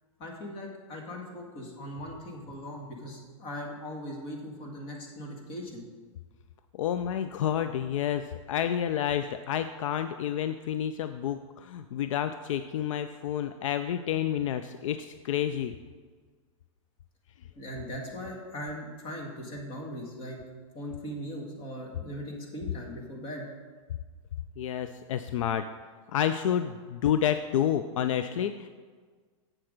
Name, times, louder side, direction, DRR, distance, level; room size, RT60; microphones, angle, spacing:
voice 1, 0.2-5.8 17.6-20.4 20.7-23.5, equal, 30° left, 0 dB, 1.6 m, -39 dB
voice 2, 6.7-15.8 24.6-25.7 26.1-28.7, left 10 dB, 70° left, 10 dB, 0.4 m, -29 dB
7.7 x 6.0 x 5.0 m, 1.5 s
supercardioid pair, 150°, 17 cm